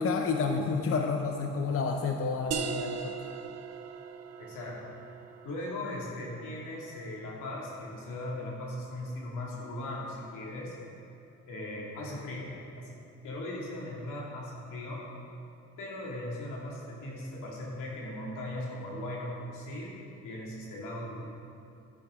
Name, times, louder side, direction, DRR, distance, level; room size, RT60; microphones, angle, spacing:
voice 1, 0.0-3.1, left 4 dB, 50° left, 3 dB, 0.8 m, -29 dB
sound 1, 2.5-7.9, right 6 dB, 55° right, 0.7 m, -40 dB
voice 2, 4.4-4.8 5.4-10.8 11.5-12.5 12.8-13.0 13.2-15.0 15.8-20.0 20.2-21.4, left 1 dB, 85° left, -4 dB, 2.4 m, -38 dB
10.5 x 10.5 x 3.7 m, 2.6 s
cardioid pair, 90°, 30 cm